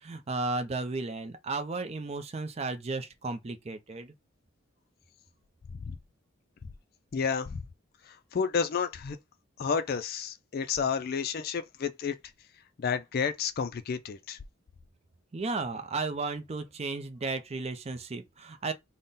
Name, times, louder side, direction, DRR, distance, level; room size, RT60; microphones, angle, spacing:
voice 1, 0.0-4.1 15.3-18.7, right 3 dB, 30° right, 0.5 m, -34 dB
voice 2, 7.1-7.6 8.3-9.2 9.6-12.2 12.8-14.4, left 6 dB, 50° left, 0.4 m, -30 dB
3.7 x 2.1 x 4.0 m
head